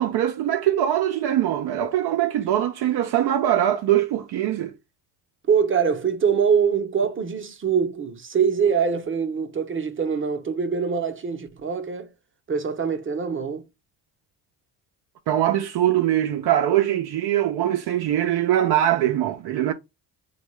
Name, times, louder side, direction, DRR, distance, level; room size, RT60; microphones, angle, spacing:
voice 1, 0.0-4.7 15.3-19.7, right 12 dB, 65° right, 0.6 m, -22 dB
voice 2, 5.5-12.1 12.5-13.6, right 6 dB, 30° right, 0.7 m, -23 dB
3.5 x 2.3 x 3.1 m
supercardioid pair, 80°, 42 cm